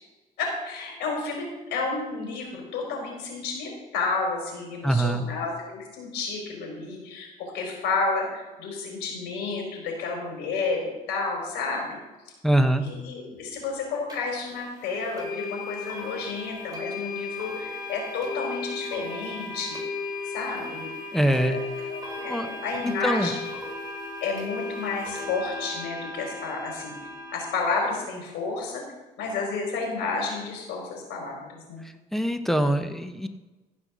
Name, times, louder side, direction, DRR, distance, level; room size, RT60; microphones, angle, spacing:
voice 1, 0.4-12.0 12.8-19.8 20.2-20.9 21.4-21.6 21.9-23.3 24.2-26.9 27.3-28.8 29.2-31.9, left 4 dB, 90° left, 0 dB, 4.7 m, -31 dB
voice 2, 4.8-5.2 12.4-12.8 21.1-21.6 22.3-22.5 22.8-23.3 31.8-33.3, right 1 dB, ahead, 8 dB, 1.0 m, -24 dB
sound 1, 14.1-14.2 15.2-27.6, left 3 dB, 25° right, 4.2 m, -35 dB
15.5 x 5.7 x 6.3 m, 1.1 s
cardioid pair, 110°, 17 cm